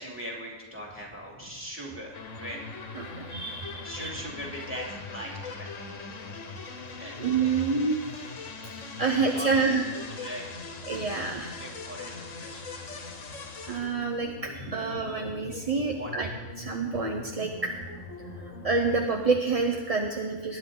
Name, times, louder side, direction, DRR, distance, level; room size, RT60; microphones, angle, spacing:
voice 1, 0.0-2.6 3.4-5.9 7.0-7.2 7.4-7.6 9.0-12.8 13.4-14.2 14.5-15.1 15.6-16.1 18.2-18.3, equal, 10° right, -2 dB, 2.7 m, -41 dB
sound 1, 2.1-19.0, left 4 dB, 65° left, 1.6 m, -41 dB
voice 2, 3.2-4.1 7.2-8.0 9.0-9.8 10.9-11.6 13.7-16.3 16.6-17.7 18.6-20.6, right 4 dB, 35° right, 2 dB, 0.6 m, -27 dB
19.5 x 10.0 x 3.8 m, 1.2 s
omnidirectional pair, 1.5 m